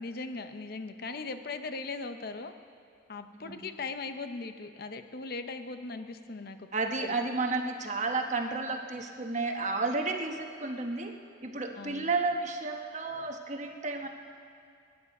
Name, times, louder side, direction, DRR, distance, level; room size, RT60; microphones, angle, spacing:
voice 1, 0.0-2.5 3.1-6.7 7.0-7.2 11.8-12.1, left 3 dB, 55° left, 8 dB, 0.7 m, -39 dB
voice 2, 6.7-11.1 11.4-14.1, right 3 dB, 40° right, 4 dB, 1.1 m, -32 dB
21.0 x 9.7 x 5.4 m, 2.5 s
head